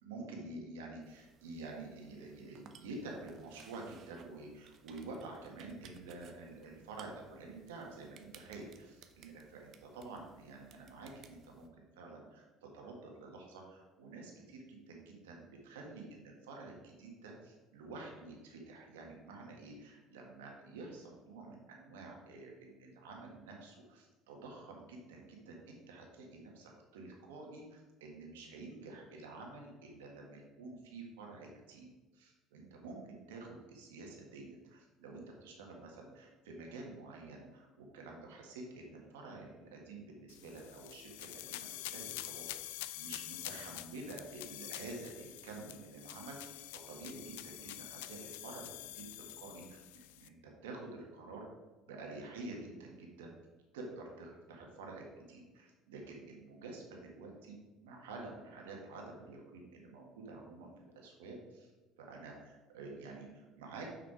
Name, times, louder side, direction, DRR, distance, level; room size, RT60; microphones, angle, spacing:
voice 1, 0.0-31.9 32.1-49.8 50.2-51.5 51.8-53.3 53.7-57.6 57.8-61.7 62.0-63.9, right 3 dB, 90° right, 0 dB, 1.7 m, -49 dB
sound 1, 1.0-11.7, right 6 dB, 55° right, 0.8 m, -61 dB
sound 2, 40.3-50.3, left 15 dB, 85° left, 0.3 m, -47 dB
6.2 x 5.8 x 4.9 m, 1.2 s
supercardioid pair, 80°, 0 cm